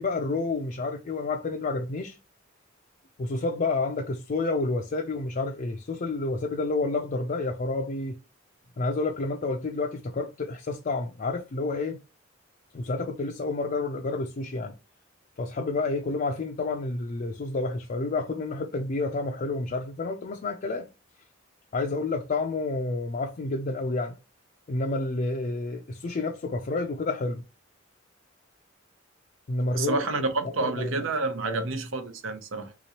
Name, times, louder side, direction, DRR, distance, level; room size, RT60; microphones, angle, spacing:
voice 1, 0.0-2.2 3.2-8.2 8.8-12.0 12.7-14.7 15.4-20.9 21.7-24.2 24.7-27.4 29.5-30.0 30.6-30.9 31.4-31.6, left 3 dB, 40° left, 0.4 m, -29 dB
voice 2, 29.7-32.7, right 3 dB, 85° right, 0.8 m, -29 dB
3.7 x 3.0 x 2.8 m
head